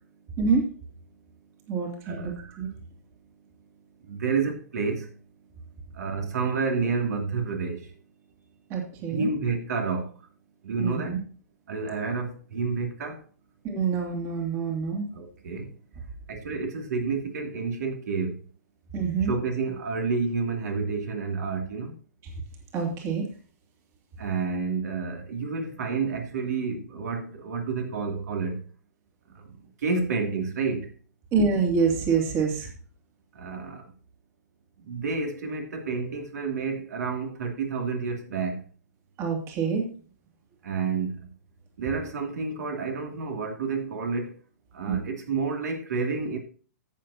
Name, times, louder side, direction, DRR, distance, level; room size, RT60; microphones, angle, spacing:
voice 1, 1.7-2.7 8.7-9.3 10.8-11.2 13.6-15.1 18.9-19.3 22.7-23.3 31.3-32.7 39.2-39.9 44.9-45.0, right 5 dB, 30° right, 2.6 m, -26 dB
voice 2, 4.1-5.1 6.0-7.8 9.1-10.1 10.6-11.1 11.7-13.2 15.1-15.7 16.3-18.4 19.3-21.9 24.2-28.6 29.8-30.9 33.3-33.8 34.9-38.6 40.6-41.2 41.8-44.3 44.7-46.4, right 4 dB, 70° right, 2.7 m, -29 dB
13.5 x 7.9 x 2.9 m
hypercardioid pair, 140°, 9 cm